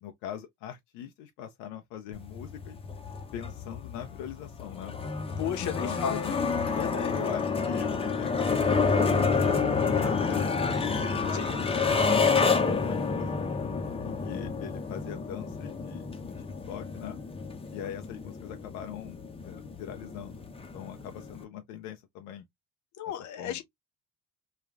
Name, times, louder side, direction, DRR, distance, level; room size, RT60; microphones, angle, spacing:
voice 1, 0.0-2.8 3.3-4.9 5.6-6.4 7.1-9.3 9.8-10.7 11.2-13.5 14.0-17.2 17.7-20.4 20.7-22.5 23.4-23.6, left 10 dB, 85° left, 0.5 m, -41 dB
sound 1, 2.1-21.4, left 4 dB, 15° left, 0.6 m, -29 dB
voice 2, 5.4-6.3 6.7-7.1 11.3-11.5 23.0-23.6, left 9 dB, 60° left, 0.8 m, -34 dB
3.1 x 2.3 x 2.3 m
supercardioid pair, 75°, 33 cm